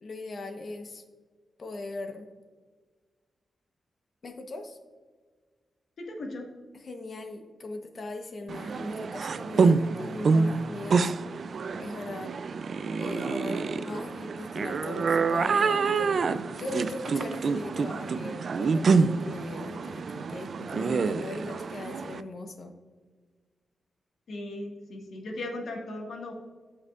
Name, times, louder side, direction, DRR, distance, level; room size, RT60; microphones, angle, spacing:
voice 1, 0.0-1.0 1.6-2.3 4.2-4.8 6.7-11.1 11.8-12.3 13.0-16.1 16.6-22.7, left 2 dB, 45° left, 5 dB, 1.0 m, -39 dB
voice 2, 6.0-6.5 24.3-26.3, left 2 dB, 65° left, 1 dB, 1.6 m, -37 dB
sound 1, 8.5-22.2, right 4 dB, 50° right, 0.3 m, -27 dB
14.0 x 6.5 x 2.4 m, 1.5 s
wide cardioid pair, 170°, 0 cm